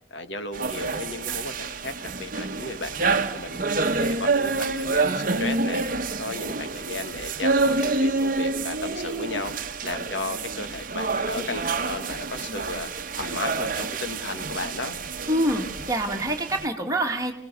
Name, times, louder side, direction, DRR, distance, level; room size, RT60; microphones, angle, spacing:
voice 1, 0.1-3.6 4.0-5.9 6.2-12.9 13.2-15.0, left 2 dB, 65° left, 9 dB, 1.8 m, -34 dB
sound 1, 0.5-16.7, right 3 dB, 45° right, 1.1 m, -28 dB
voice 2, 15.3-17.3, right 1 dB, 20° right, 2 dB, 2.4 m, -26 dB
29.0 x 19.0 x 7.0 m, 0.77 s
head